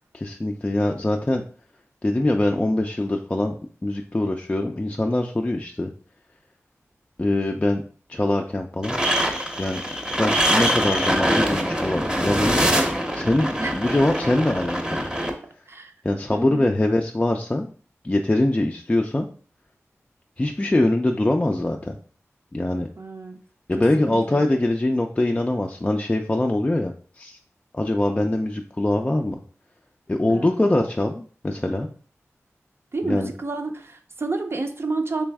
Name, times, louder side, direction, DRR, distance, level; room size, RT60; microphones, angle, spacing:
voice 1, 0.1-1.4 2.0-3.5 3.8-5.9 7.2-7.8 8.1-9.0 9.6-9.8 10.2-12.6 13.1-15.1 16.0-17.7 18.0-19.3 20.4-22.0 22.5-22.9 23.7-27.4 27.7-29.4 30.1-31.9 33.0-33.3, left 1 dB, 25° left, 2 dB, 0.3 m, -23 dB
sound 1, 8.8-15.3, equal, 15° right, 0.7 m, -23 dB
voice 2, 16.3-16.7 23.0-23.4 24.0-24.5 30.3-30.8 32.9-35.2, right 3 dB, 50° right, 5 dB, 0.6 m, -30 dB
3.4 x 3.1 x 3.4 m, 0.44 s
cardioid pair, 50°, 5 cm